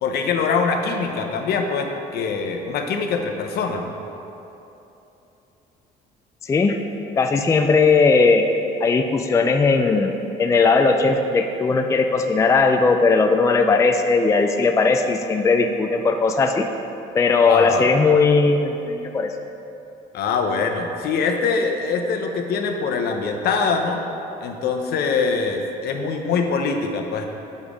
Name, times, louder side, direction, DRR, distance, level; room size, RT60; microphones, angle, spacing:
voice 1, 0.0-3.9 17.5-17.9 20.1-24.0 24.4-27.2, left 5 dB, 70° left, 4 dB, 0.8 m, -23 dB
voice 2, 6.4-6.8 7.2-8.5 8.8-10.1 10.4-16.7 17.1-19.3, left 4 dB, 20° left, 5 dB, 0.3 m, -18 dB
7.0 x 5.4 x 4.9 m, 2.9 s
cardioid pair, 110°, 17 cm